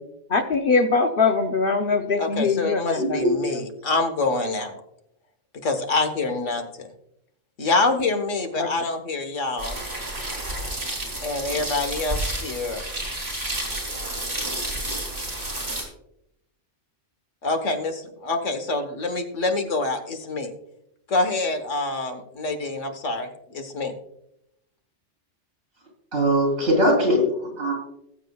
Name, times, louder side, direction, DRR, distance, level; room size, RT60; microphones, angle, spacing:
voice 1, 0.3-3.6 8.6-8.7, left 4 dB, 50° left, 5 dB, 0.8 m, -22 dB
voice 2, 2.2-4.8 5.6-6.9 7.6-9.8 11.2-12.8 17.4-20.5 21.1-23.9, left 3 dB, 80° left, 6 dB, 1.6 m, -26 dB
voice 3, 2.9-3.4 26.1-27.7, equal, 65° right, 1 dB, 4.1 m, -21 dB
sound 1, 9.6-15.8, right 1 dB, 35° right, 3.1 m, -30 dB
20.5 x 7.5 x 2.3 m, 0.81 s
omnidirectional pair, 1.3 m